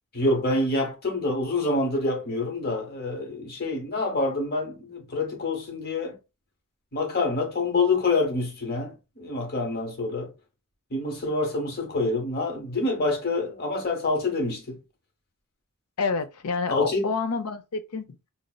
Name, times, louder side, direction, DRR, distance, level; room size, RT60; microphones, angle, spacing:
voice 1, 0.1-6.2 6.9-10.3 10.9-14.8 16.7-17.1, left 2 dB, 45° left, 1.0 m, -27 dB
voice 2, 16.0-18.2, left 4 dB, 80° left, 0.5 m, -28 dB
5.1 x 2.0 x 2.2 m
head